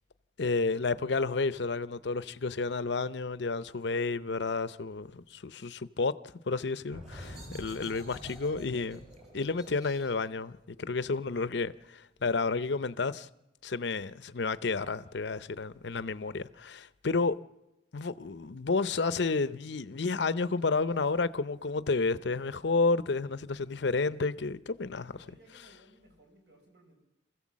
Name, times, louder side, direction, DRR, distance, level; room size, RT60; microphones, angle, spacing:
voice 1, 0.4-6.1 6.5-9.0 9.3-13.3 13.6-17.4 17.9-25.1, left 4 dB, 65° left, 0.6 m, -31 dB
sound 1, 6.8-12.2, equal, 40° right, 6.6 m, -49 dB
voice 2, 25.1-27.0, right 1 dB, 65° right, 5.0 m, -60 dB
27.0 x 15.5 x 7.4 m
head